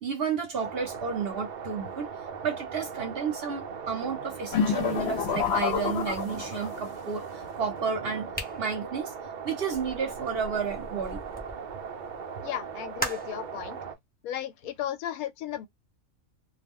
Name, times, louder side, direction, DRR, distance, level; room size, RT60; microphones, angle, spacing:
voice 1, 0.0-2.1 2.4-8.3 8.6-9.1 9.4-11.2, right 6 dB, 55° right, 0.7 m, -32 dB
sound 1, 0.6-13.9, right 6 dB, 90° right, 0.4 m, -39 dB
sound 2, 4.5-6.9, left 7 dB, 60° left, 0.8 m, -28 dB
sound 3, 8.3-11.6 13.0-13.4, equal, 10° left, 0.5 m, -38 dB
voice 2, 12.4-13.8 14.2-15.7, left 11 dB, 85° left, 1.0 m, -35 dB
2.4 x 2.1 x 3.5 m
omnidirectional pair, 1.5 m